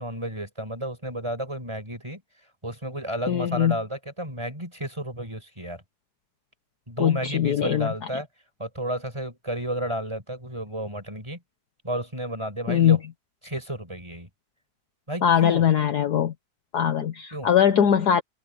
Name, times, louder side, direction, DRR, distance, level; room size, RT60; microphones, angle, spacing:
voice 1, 0.0-2.2 2.6-5.8 6.9-8.3 8.6-11.4 11.8-13.0 13.4-14.3 15.1-15.7 17.3-17.5, right 1 dB, 15° right, 5.5 m, -32 dB
voice 2, 3.3-3.8 7.0-7.9 12.7-13.0 15.2-16.3 16.7-18.2, left 9 dB, 60° left, 1.4 m, -21 dB
open air
omnidirectional pair, 2.2 m